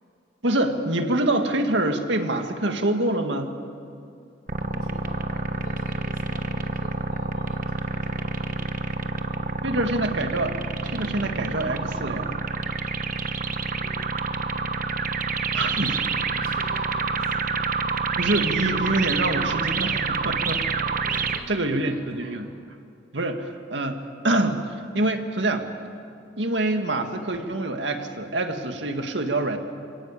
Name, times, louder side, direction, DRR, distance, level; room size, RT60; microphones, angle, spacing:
voice 1, 0.4-3.5 9.6-10.6 10.8-12.4 15.5-16.0 18.2-20.6 21.1-22.5 23.1-24.7 24.9-25.7 26.4-29.6, right 2 dB, 70° right, 5 dB, 2.0 m, -25 dB
voice 2, 4.4-9.8 13.5-14.5 15.5-17.6 21.0-22.5, left 1 dB, 50° left, -2 dB, 4.9 m, -48 dB
sound 1, 4.5-21.4, right 4 dB, 50° right, 1.2 m, -27 dB
27.5 x 18.0 x 8.5 m, 2.4 s
head